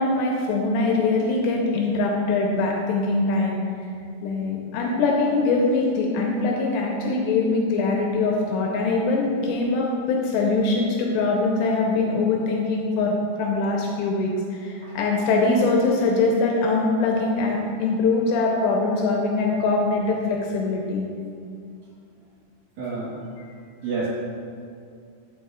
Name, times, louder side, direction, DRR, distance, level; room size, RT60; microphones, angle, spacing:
voice 1, 0.0-3.6 4.2-21.1, left 3 dB, 85° left, -1 dB, 2.8 m, -23 dB
voice 2, 22.8-23.1 23.8-24.1, right 4 dB, 60° right, -7 dB, 2.3 m, -28 dB
12.5 x 5.0 x 2.4 m, 2.4 s
omnidirectional pair, 5.0 m